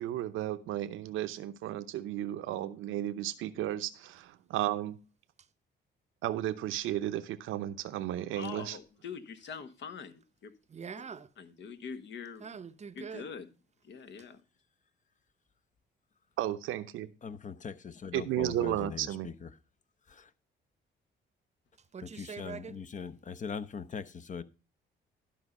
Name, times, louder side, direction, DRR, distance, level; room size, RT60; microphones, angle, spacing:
voice 1, 0.0-5.0 6.2-8.8 16.4-17.1 18.1-19.3, right 13 dB, 85° right, 0.7 m, -34 dB
voice 2, 8.3-10.5 11.4-12.5 12.9-13.5 13.8-14.4, left 6 dB, 70° left, 1.3 m, -44 dB
voice 3, 10.7-11.3 12.4-13.2 21.9-22.7, right 6 dB, 35° right, 0.7 m, -43 dB
voice 4, 17.2-19.5 20.1-20.3 22.0-24.4, left 6 dB, 40° left, 0.7 m, -41 dB
12.0 x 5.5 x 5.3 m
cardioid pair, 90°, 20 cm